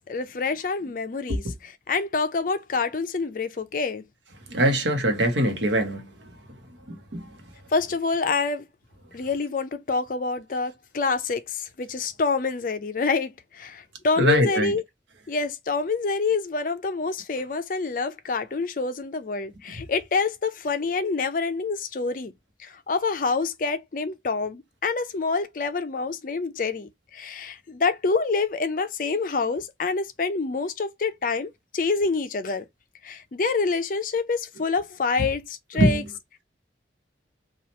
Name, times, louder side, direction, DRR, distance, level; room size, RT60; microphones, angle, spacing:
voice 1, 0.1-4.0 7.7-8.6 9.1-14.8 15.3-22.3 22.6-32.7 33.0-36.0, left 4 dB, 45° left, 0.4 m, -27 dB
voice 2, 4.5-6.3 6.9-7.3 14.2-14.8 19.7-19.8 35.7-36.1, equal, 85° right, 1.0 m, -23 dB
3.0 x 2.4 x 4.0 m
head